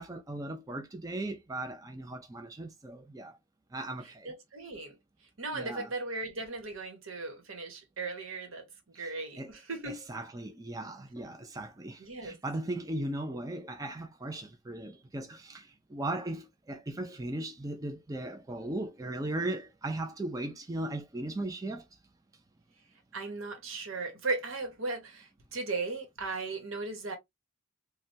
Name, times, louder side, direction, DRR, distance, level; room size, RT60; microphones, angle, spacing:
voice 1, 0.0-3.4 3.7-4.3 5.5-5.9 9.0-9.5 9.8-21.9, right 1 dB, 20° right, 0.4 m, -37 dB
voice 2, 4.2-4.9 5.4-8.6 8.9-10.0 12.0-12.4 23.1-27.2, right 3 dB, 85° right, 1.1 m, -37 dB
3.3 x 2.2 x 2.6 m
head